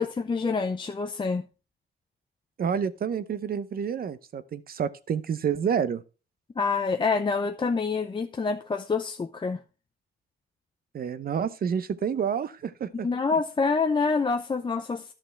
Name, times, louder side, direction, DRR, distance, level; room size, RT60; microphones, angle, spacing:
voice 1, 0.0-1.4 6.6-9.6 12.9-15.1, left 4 dB, 25° left, 0.6 m, -27 dB
voice 2, 2.6-6.0 10.9-13.1, right 7 dB, 50° right, 0.8 m, -29 dB
11.5 x 6.6 x 3.3 m
cardioid pair, 90°, 20 cm